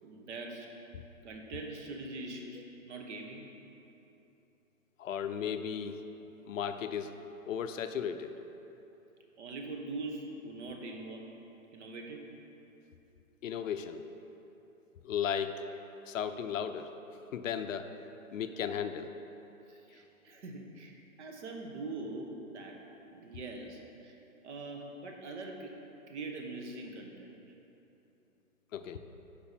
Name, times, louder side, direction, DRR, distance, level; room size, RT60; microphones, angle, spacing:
voice 1, 0.0-0.7 1.2-3.5 9.4-11.3 11.7-12.3 19.7-22.8 23.1-24.2 24.4-25.7 26.1-27.4, right 2 dB, 55° right, 2 dB, 1.3 m, -43 dB
voice 2, 5.0-6.0 6.5-7.2 7.5-8.3 13.4-14.0 15.0-15.6 16.0-16.9 17.3-17.9 18.3-19.1 28.7-29.0, left 8 dB, 65° left, 8 dB, 0.6 m, -35 dB
10.5 x 5.0 x 4.3 m, 3.0 s
hypercardioid pair, 135°, 42 cm